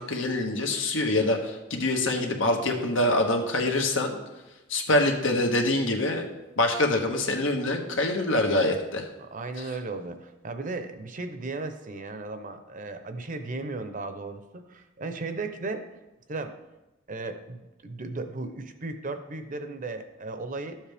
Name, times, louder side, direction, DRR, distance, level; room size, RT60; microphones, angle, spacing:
voice 1, 0.0-4.2 4.7-6.3 6.6-9.1, left 2 dB, 80° left, 3 dB, 1.4 m, -25 dB
voice 2, 9.2-15.8 16.3-16.6 17.1-20.8, right 3 dB, 45° right, 8 dB, 0.8 m, -36 dB
12.0 x 7.4 x 3.5 m, 1.0 s
head